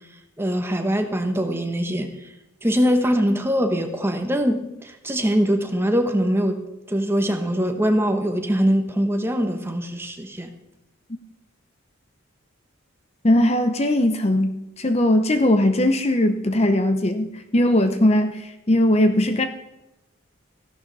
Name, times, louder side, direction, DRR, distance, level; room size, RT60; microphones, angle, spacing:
voice 1, 0.4-2.3 2.6-10.5, equal, 10° right, 6 dB, 1.1 m, -22 dB
voice 2, 13.2-19.5, left 1 dB, 30° left, 8 dB, 0.7 m, -19 dB
15.0 x 11.5 x 4.1 m, 0.95 s
head